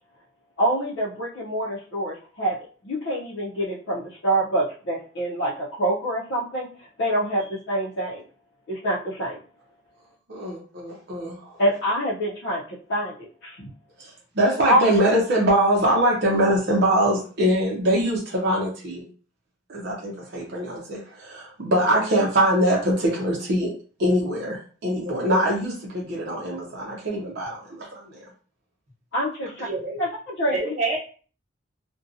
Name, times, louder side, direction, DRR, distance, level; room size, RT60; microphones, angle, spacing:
voice 1, 0.6-2.6 2.8-6.7 7.0-8.2 8.7-9.4 11.6-13.7 14.6-14.8 29.1-29.7 30.0-30.6, right 1 dB, 60° left, -8 dB, 0.6 m, -26 dB
voice 2, 10.3-11.5 14.4-19.0 19.7-23.7 24.0-28.0, right 1 dB, 55° right, -4 dB, 0.6 m, -23 dB
voice 3, 29.6-30.0 30.5-31.0, right 3 dB, 40° right, -5 dB, 1.2 m, -27 dB
2.6 x 2.2 x 2.5 m, 0.41 s
head